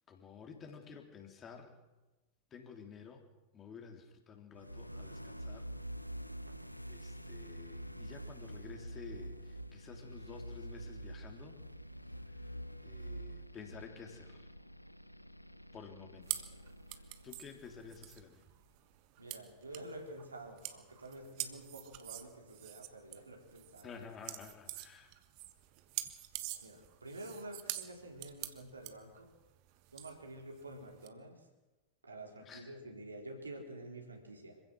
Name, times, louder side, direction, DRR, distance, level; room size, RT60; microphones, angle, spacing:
voice 1, 0.1-1.8 2.5-3.2 3.5-5.7 6.9-11.6 12.8-14.5 15.7-16.4 16.9-18.4 23.8-25.1 32.4-32.8, left 5 dB, 25° left, 4 dB, 3.3 m, -52 dB
sound 1, 4.5-18.4, right 1 dB, 90° left, 0.7 m, -47 dB
sound 2, 16.2-31.1, right 15 dB, 45° right, 1.5 m, -46 dB
voice 2, 19.2-24.0 26.6-29.3 29.9-31.5 32.0-34.6, right 1 dB, 80° right, 2 dB, 4.0 m, -49 dB
26.0 x 16.0 x 6.4 m, 1.1 s
figure-of-eight pair, 90°, 0 cm